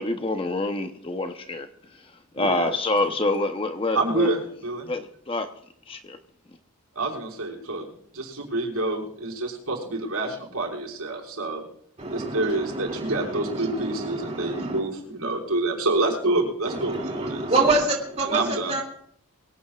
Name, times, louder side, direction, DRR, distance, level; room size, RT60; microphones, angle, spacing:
voice 1, 0.0-1.7 2.3-4.3 4.9-5.5 5.9-6.2, left 2 dB, 25° left, 0.8 m, -26 dB
voice 2, 2.4-2.7 3.0-3.1 3.9-4.9 7.0-11.7 12.1-17.4 18.3-18.7, right 2 dB, 80° right, 5.2 m, -27 dB
voice 3, 12.0-14.8 16.6-18.8, right 2 dB, 30° right, 2.5 m, -27 dB
23.0 x 17.0 x 2.4 m
head